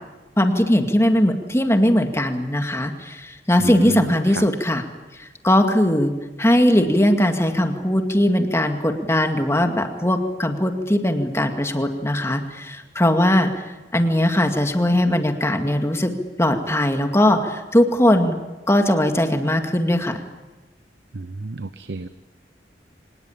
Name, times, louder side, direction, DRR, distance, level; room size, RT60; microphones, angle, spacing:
voice 1, 0.4-4.8 5.2-6.1 6.4-13.5 13.9-16.1 16.4-18.4 18.7-20.2, left 1 dB, 15° left, 5 dB, 2.1 m, -19 dB
voice 2, 3.6-4.1 4.4-4.5 21.1-22.1, right 3 dB, 80° right, 12 dB, 0.8 m, -30 dB
25.0 x 20.5 x 8.8 m, 1.1 s
head